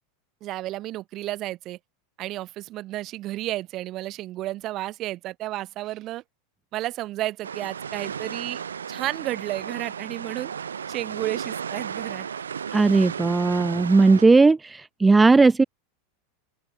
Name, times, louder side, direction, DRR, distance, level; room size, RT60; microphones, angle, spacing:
voice 1, 0.4-1.8 2.2-6.2 6.7-10.5 10.9-12.3, right 16 dB, 45° right, 2.6 m, -32 dB
Waves on shore from pier of lake maggiore, 7.4-14.3, right 7 dB, 85° right, 0.9 m, -34 dB
voice 2, 12.7-15.6, right 3 dB, 15° right, 0.3 m, -17 dB
open air
hypercardioid pair, 90°, 0 cm